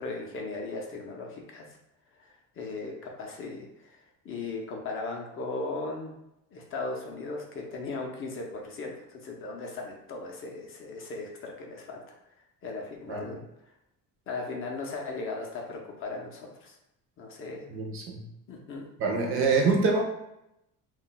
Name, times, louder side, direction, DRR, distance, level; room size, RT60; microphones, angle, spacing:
voice 1, 0.0-1.7 2.2-4.0 4.2-6.1 6.5-12.0 12.6-13.4 14.3-16.8 17.2-17.7 18.5-18.8, left 3 dB, 40° left, 1 dB, 0.4 m, -37 dB
voice 2, 17.7-18.2 19.0-20.0, right 4 dB, 40° right, 1 dB, 0.4 m, -25 dB
2.2 x 2.0 x 3.7 m, 0.85 s
cardioid pair, 165°, 34 cm